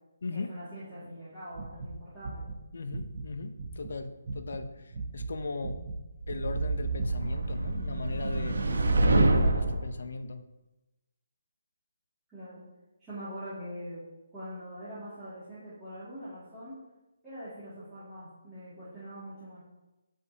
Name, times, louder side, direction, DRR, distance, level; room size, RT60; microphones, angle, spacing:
voice 1, 0.3-2.4 12.3-12.6 13.0-14.0 14.3-16.7 17.2-19.6, equal, 5° right, -16 dB, 2.2 m, -43 dB
sound 1, 1.5-3.9 4.2-4.6 4.9-6.0 6.3-7.3 7.6-9.4, right 3 dB, 30° right, 0.7 m, -39 dB
voice 2, 2.7-5.8 6.3-8.6 9.1-10.4, left 3 dB, 50° left, 8 dB, 0.7 m, -38 dB
sound 2, 6.2-9.9, right 2 dB, 70° right, 1.0 m, -26 dB
15.5 x 5.3 x 2.8 m, 1.0 s
hypercardioid pair, 180°, 0 cm